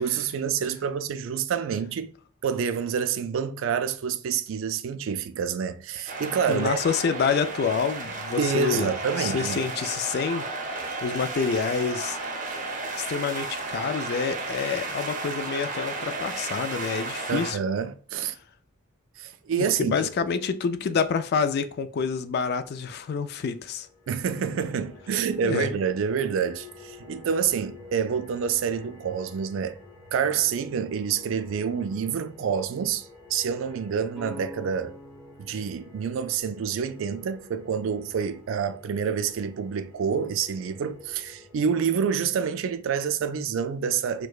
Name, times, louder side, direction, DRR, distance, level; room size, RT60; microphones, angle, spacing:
voice 1, 0.0-2.1 2.4-6.8 8.4-9.7 17.3-18.4 19.2-20.3 24.1-29.8 30.1-35.0 35.4-44.3, right 7 dB, 70° right, 0.3 m, -28 dB
sound 1, 6.1-17.5, right 3 dB, 40° right, 0.7 m, -33 dB
voice 2, 6.5-8.9 9.2-10.4 11.0-12.2 12.9-17.6 19.8-23.9 25.4-25.7, left 6 dB, 50° left, 0.3 m, -27 dB
sound 2, 23.7-41.6, left 3 dB, 15° left, 0.9 m, -49 dB
sound 3, 34.1-37.9, left 1 dB, 5° right, 0.5 m, -47 dB
4.5 x 2.2 x 2.3 m
head